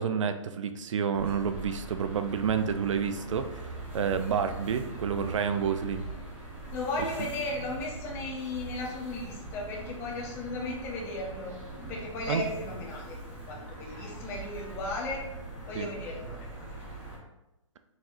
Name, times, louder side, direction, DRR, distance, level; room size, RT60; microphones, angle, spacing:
voice 1, 0.0-6.1 12.3-12.4 15.7-15.9, right 7 dB, 65° right, 9 dB, 0.5 m, -29 dB
sound 1, 1.1-17.2, right 2 dB, 10° right, 1.0 m, -42 dB
voice 2, 6.7-11.6 11.9-13.2 13.5-15.3 15.7-16.4, left 2 dB, 15° left, -1 dB, 0.6 m, -35 dB
4.2 x 4.0 x 2.6 m, 0.98 s
hypercardioid pair, 160°, 17 cm